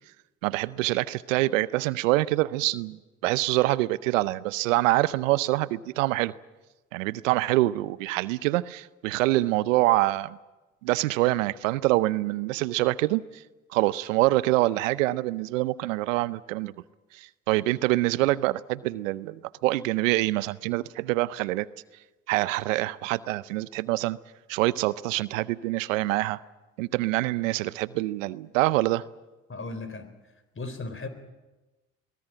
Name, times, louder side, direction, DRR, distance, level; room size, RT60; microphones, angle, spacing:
voice 1, 0.4-3.0 3.2-6.3 6.9-10.4 10.8-13.4 13.7-16.7 17.1-21.7 22.3-24.2 24.5-26.4 26.8-29.0, right 18 dB, 90° right, 19 dB, 0.6 m, -25 dB
voice 2, 29.5-30.1 30.6-31.1, left 3 dB, 35° left, 11 dB, 4.1 m, -36 dB
22.5 x 18.0 x 8.9 m, 1.1 s
hypercardioid pair, 55°, 38 cm